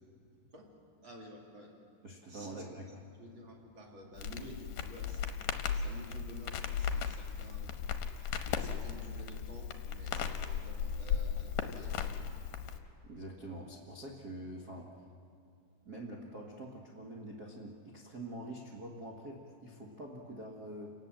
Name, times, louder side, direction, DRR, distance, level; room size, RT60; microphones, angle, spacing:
voice 1, 1.0-1.7 2.3-2.8 3.1-5.4 5.7-7.7 8.5-12.1, equal, 30° right, 0 dB, 3.2 m, -51 dB
voice 2, 2.0-3.0 13.0-14.9 15.8-20.9, right 1 dB, 80° right, -3 dB, 0.8 m, -45 dB
Crackle, 4.2-12.8, left 7 dB, 65° left, 2.2 m, -36 dB
29.0 x 18.5 x 7.6 m, 2.5 s
omnidirectional pair, 4.9 m